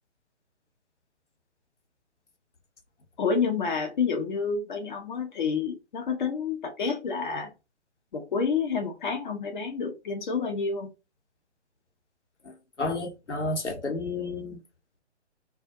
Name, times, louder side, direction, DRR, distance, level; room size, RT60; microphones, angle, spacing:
voice 1, 3.2-7.5 8.1-10.9, left 5 dB, 45° left, 0.6 m, -29 dB
voice 2, 12.5-14.6, left 2 dB, 85° left, 0.8 m, -31 dB
2.3 x 2.0 x 2.6 m
figure-of-eight pair, 135°, 34 cm